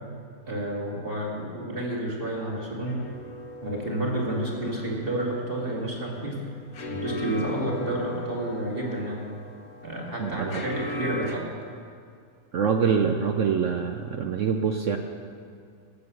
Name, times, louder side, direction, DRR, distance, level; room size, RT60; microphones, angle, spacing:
voice 1, 0.5-3.0 3.6-6.4 6.9-9.2 9.8-11.5, right 1 dB, 35° right, -2 dB, 2.3 m, -30 dB
sound 1, 2.9-11.4, left 1 dB, 65° left, 1.4 m, -39 dB
voice 2, 10.2-10.6 12.5-15.0, right 6 dB, 65° right, 5 dB, 0.8 m, -25 dB
13.0 x 7.9 x 6.9 m, 2.3 s
omnidirectional pair, 1.7 m